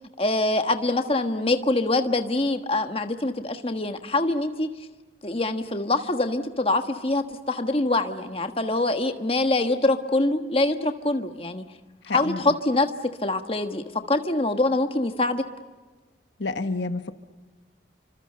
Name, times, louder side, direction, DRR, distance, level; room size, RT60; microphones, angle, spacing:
voice 1, 0.2-4.7 5.2-11.6 12.1-12.9 13.2-15.4, left 2 dB, 30° left, 7 dB, 1.4 m, -24 dB
voice 2, 12.0-12.5 16.4-17.1, left 3 dB, 70° left, 9 dB, 1.2 m, -29 dB
29.0 x 25.5 x 6.8 m, 1.3 s
head